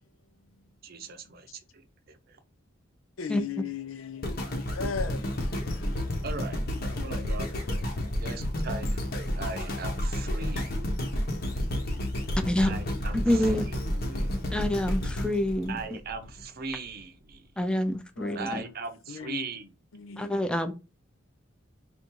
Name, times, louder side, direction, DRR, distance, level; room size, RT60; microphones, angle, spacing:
voice 1, 0.8-2.4 6.2-6.6 6.9-7.5 8.2-9.0 9.4-10.8 11.5-11.9 12.2-14.6 15.7-17.5 18.3-19.7, right 4 dB, 50° right, 0.6 m, -40 dB
voice 2, 3.2-6.1 12.2-12.6 14.1-14.3 18.2-18.6 19.1-19.5 19.9-20.3, left 6 dB, 90° left, 0.6 m, -38 dB
sound 1, 4.2-16.4 17.0-17.1, left 1 dB, 50° left, 1.0 m, -31 dB
voice 3, 13.3-13.6 14.5-15.8 17.6-18.5 20.2-20.7, left 1 dB, 5° left, 0.5 m, -26 dB
3.5 x 2.6 x 4.5 m
head